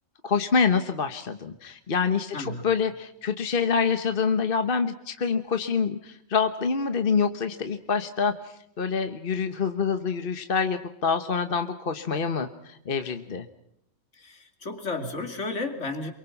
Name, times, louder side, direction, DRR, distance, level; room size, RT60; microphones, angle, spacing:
voice 1, 0.2-13.5, left 5 dB, 45° left, 8 dB, 1.3 m, -26 dB
voice 2, 14.2-16.1, left 3 dB, 70° left, 6 dB, 3.0 m, -33 dB
27.5 x 24.0 x 5.9 m, 0.75 s
omnidirectional pair, 1.3 m